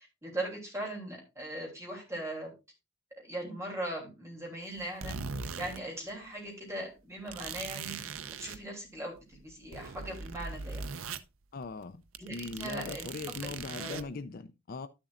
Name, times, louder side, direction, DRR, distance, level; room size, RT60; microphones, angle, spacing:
voice 1, 0.0-2.5 3.3-5.2 5.6-8.0 8.4-10.9 12.2-13.1 13.4-14.0, right 1 dB, 15° right, 3.1 m, -39 dB
sound 1, 4.8-5.8 6.1-6.2 7.3-8.6 9.2-11.2 11.6-11.8 12.1-14.0, right 5 dB, 80° right, 0.6 m, -40 dB
voice 2, 11.5-12.0 12.3-14.9, left 4 dB, 45° left, 0.5 m, -40 dB
11.5 x 7.1 x 2.5 m
head